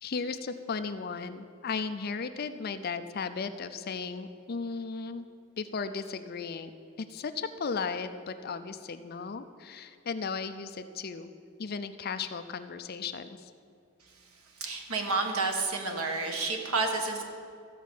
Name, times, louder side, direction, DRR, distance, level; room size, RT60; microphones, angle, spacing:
voice 1, 0.0-5.3 5.6-6.7 7.0-11.3 11.6-13.5, left 5 dB, 45° left, 10 dB, 0.5 m, -35 dB
voice 2, 14.6-17.2, right 3 dB, 85° right, 3 dB, 1.4 m, -30 dB
14.0 x 5.1 x 7.4 m, 2.3 s
head